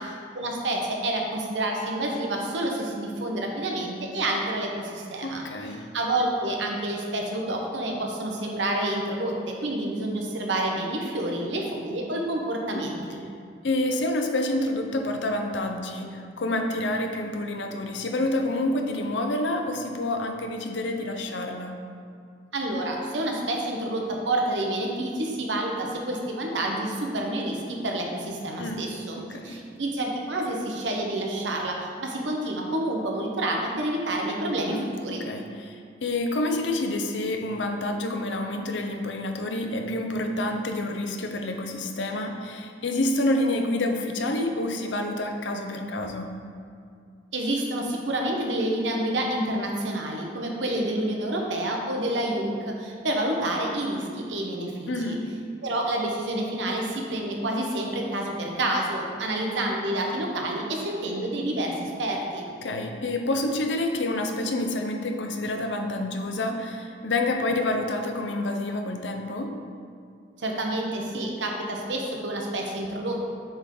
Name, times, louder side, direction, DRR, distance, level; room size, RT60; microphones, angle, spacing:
voice 1, 0.3-5.4 5.9-13.2 22.5-35.3 47.3-55.2 55.6-62.5 70.4-73.2, right 1 dB, 80° right, 0 dB, 0.9 m, -28 dB
voice 2, 5.2-5.9 12.7-12.9 13.6-21.8 28.6-28.9 29.2-29.6 34.7-46.3 54.9-55.3 62.6-69.6, left 1 dB, 75° left, 4 dB, 0.6 m, -28 dB
7.0 x 3.6 x 3.8 m, 2.3 s
head